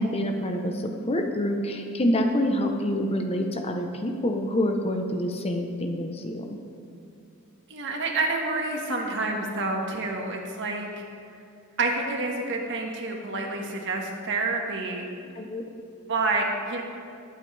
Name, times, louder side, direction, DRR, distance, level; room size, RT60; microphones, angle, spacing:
voice 1, 0.0-6.6 15.4-15.6, equal, 30° left, 4 dB, 0.9 m, -27 dB
voice 2, 7.7-11.0 11.8-15.0 16.1-16.8, right 3 dB, 60° right, 1 dB, 1.8 m, -28 dB
20.5 x 8.6 x 3.4 m, 2.5 s
head